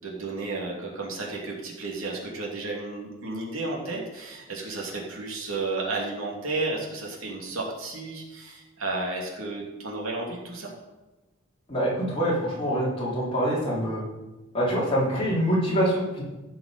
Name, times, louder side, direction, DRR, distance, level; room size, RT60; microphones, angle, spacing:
voice 1, 0.0-10.7, right 3 dB, 80° right, -2 dB, 2.8 m, -32 dB
voice 2, 11.7-14.0 14.5-16.2, equal, 25° left, -6 dB, 3.5 m, -25 dB
15.5 x 6.1 x 5.2 m, 1.1 s
head